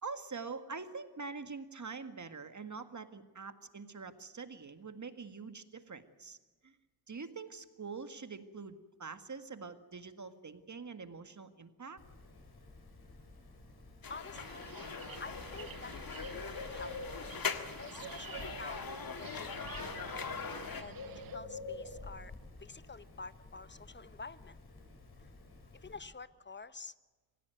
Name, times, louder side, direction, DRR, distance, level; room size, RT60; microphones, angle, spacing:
voice 1, 0.0-6.4 6.6-6.7 7.1-12.0, right 4 dB, 50° right, 9 dB, 1.8 m, -45 dB
Bird, 12.0-26.0, left 3 dB, 85° left, 5.3 m, -49 dB
sound 1, 14.0-20.8, left 6 dB, 65° left, 1.9 m, -42 dB
voice 2, 14.1-14.9 15.2-17.4 17.8-18.9 19.2-19.8 20.4-22.3 22.6-24.6 25.2-25.3 25.7-26.9, left 4 dB, 30° left, 14 dB, 1.1 m, -49 dB
sound 2, 14.3-21.4, right 9 dB, 65° right, 0.7 m, -51 dB
25.5 x 16.0 x 9.2 m, 1.3 s
wide cardioid pair, 70°, 37 cm